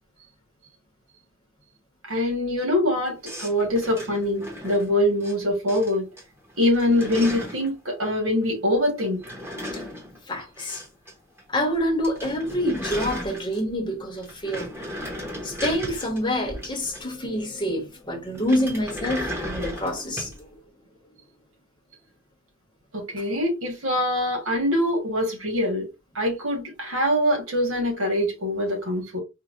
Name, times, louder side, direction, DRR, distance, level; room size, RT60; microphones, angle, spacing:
voice 1, 2.0-6.1 6.6-9.2 22.9-25.9 26.1-29.2, left 1 dB, 85° right, 1.6 m, -24 dB
sound 1, 3.2-5.3 5.7-6.2 6.5-7.7 9.0-11.1 11.4-11.5 11.8-11.9 12.0-13.8 14.2-17.3 18.3-20.4, equal, 10° right, 1.0 m, -35 dB
voice 2, 10.3-10.8 11.5-14.7 15.4-20.4, equal, 25° left, 1.0 m, -27 dB
4.4 x 2.2 x 2.5 m
head